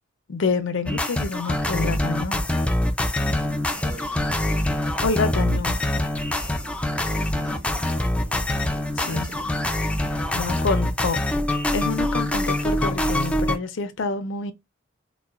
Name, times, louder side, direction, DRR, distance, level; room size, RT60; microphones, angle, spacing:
voice 1, 0.3-2.5 5.0-5.8 9.0-9.3 10.3-11.2 11.7-14.5, left 4 dB, 70° left, 0.5 m, -27 dB
sound 1, 0.9-13.6, left 1 dB, 5° left, 0.3 m, -24 dB
sound 2, 3.2-11.0, equal, 75° right, 1.6 m, -40 dB
voice 2, 3.8-4.5 6.9-7.9 8.9-9.4, equal, 45° right, 1.2 m, -45 dB
3.9 x 2.1 x 2.3 m
head